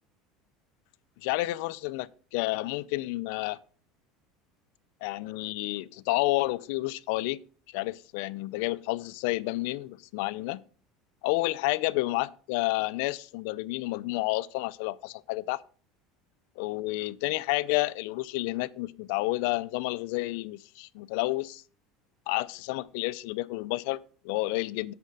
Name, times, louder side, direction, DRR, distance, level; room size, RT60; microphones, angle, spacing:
voice 1, 1.2-3.6 5.0-7.4 7.7-10.6 11.2-15.6 16.6-21.6 22.3-24.9, left 20 dB, 70° left, 0.5 m, -30 dB
8.2 x 6.7 x 5.4 m
cardioid pair, 160°, 0 cm